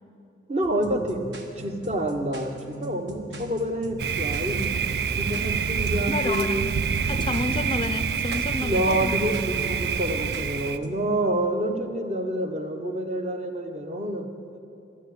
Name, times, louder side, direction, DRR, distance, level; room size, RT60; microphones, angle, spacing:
voice 1, 0.5-1.2 1.6-2.5 2.8-4.8 5.1-6.9 8.6-14.6, right 1 dB, 35° right, 5 dB, 0.8 m, -28 dB
sound 1, 0.6-10.9, right 1 dB, 75° right, 1.3 m, -40 dB
Thunder, 4.0-10.8, right 6 dB, 60° right, 0.3 m, -27 dB
voice 2, 6.1-6.7 7.1-9.2, left 2 dB, 25° left, 11 dB, 0.4 m, -30 dB
12.5 x 7.5 x 9.2 m, 2.7 s
head